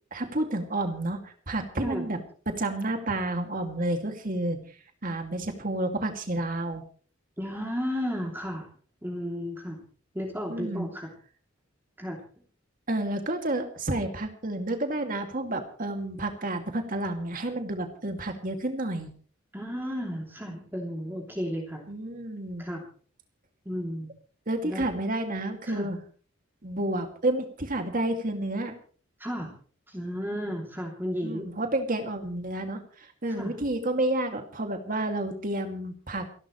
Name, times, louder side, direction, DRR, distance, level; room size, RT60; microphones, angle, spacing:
voice 1, 0.1-2.2 2.5-4.6 5.0-6.8 10.5-10.9 12.9-19.1 21.9-22.7 24.5-26.0 26.6-28.7 31.2-36.3, right 1 dB, 40° right, 5 dB, 2.5 m, -30 dB
voice 2, 7.4-8.7 9.0-9.8 10.1-11.1 12.0-12.2 19.5-21.9 22.6-22.8 23.6-24.1 24.6-24.8 25.6-25.9 29.2-29.5 29.9-31.5 33.3-33.5, equal, 10° right, 0 dB, 2.9 m, -33 dB
28.5 x 12.0 x 3.2 m, 0.43 s
head